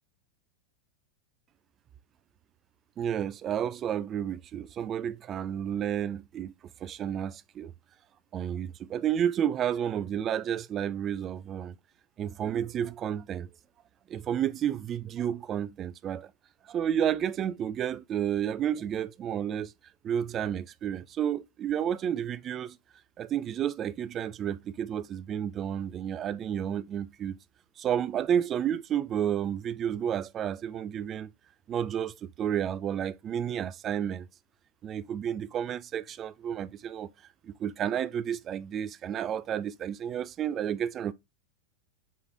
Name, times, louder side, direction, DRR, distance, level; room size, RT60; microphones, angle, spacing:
voice 1, 3.0-6.5 6.8-7.7 8.3-11.7 12.2-13.5 14.1-16.3 16.7-19.7 20.0-22.8 23.2-27.3 27.8-31.3 31.7-34.3 34.8-37.1 37.4-41.1, right 9 dB, 30° right, 0.3 m, -31 dB
4.7 x 2.5 x 4.2 m
figure-of-eight pair, 90°, 0 cm